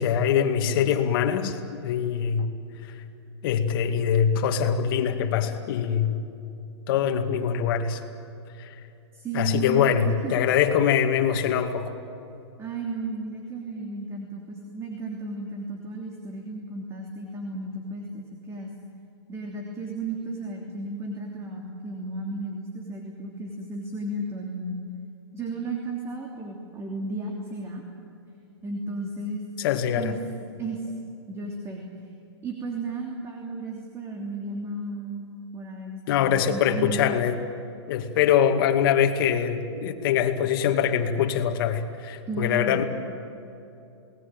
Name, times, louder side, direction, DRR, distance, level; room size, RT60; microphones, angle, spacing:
voice 1, 0.0-2.5 3.4-6.2 6.9-8.0 8.6-8.7 9.3-12.0 29.6-30.1 36.1-37.4 37.9-42.8, left 8 dB, 50° left, 5 dB, 2.4 m, -23 dB
voice 2, 9.1-10.5 12.6-18.7 19.3-24.8 25.3-27.8 28.6-29.4 30.0-30.2 30.6-30.9 31.3-31.9 32.4-37.1 42.3-42.8, right 2 dB, 20° right, 1 dB, 3.1 m, -34 dB
28.5 x 19.5 x 9.1 m, 2.7 s
hypercardioid pair, 135°, 15 cm